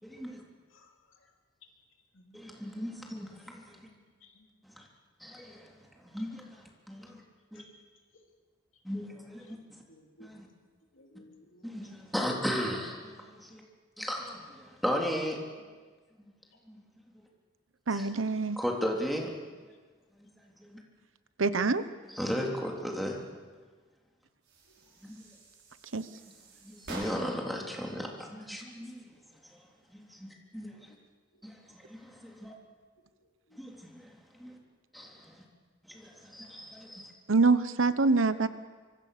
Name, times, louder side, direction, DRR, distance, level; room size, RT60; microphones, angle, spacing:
voice 1, 0.0-0.4 2.3-3.8 4.8-4.9 5.2-5.7 6.0-7.2 7.5-7.6 8.8-9.8 10.2-10.5 11.6-13.6 14.0-15.4 16.2-16.3 16.7-16.8 17.9-18.1 18.6-19.3 20.6-20.8 22.1-23.2 25.0-25.2 26.6-29.0 29.9-30.9 31.4-32.5 33.6-34.6 34.9-35.4 35.9-37.1, equal, ahead, -1 dB, 3.7 m, -36 dB
voice 2, 3.7-4.0 4.3-4.4 7.0-7.1 9.9-10.3 10.9-11.9 24.7-24.8, left 1 dB, 70° left, 2 dB, 3.6 m, -58 dB
voice 3, 17.9-18.6 21.4-21.8 25.9-26.1 37.3-38.5, right 3 dB, 80° right, 13 dB, 1.1 m, -25 dB
sound 1, 24.4-27.5, right 2 dB, 60° right, 6.6 m, -47 dB
25.0 x 24.5 x 6.9 m, 1.4 s
head